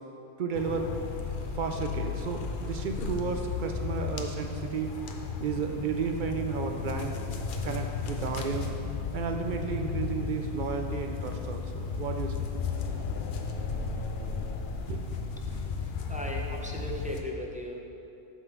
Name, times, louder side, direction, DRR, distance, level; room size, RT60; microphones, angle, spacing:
voice 1, 0.4-0.9 1.6-5.0 5.4-7.2 7.6-8.7 9.1-12.5 14.9-15.2, right 5 dB, 60° right, 4 dB, 0.5 m, -33 dB
sound 1, 0.5-17.2, left 4 dB, 55° left, 0.7 m, -34 dB
voice 2, 16.1-17.8, equal, 10° right, -1 dB, 0.4 m, -36 dB
8.1 x 3.8 x 5.9 m, 2.8 s
omnidirectional pair, 1.1 m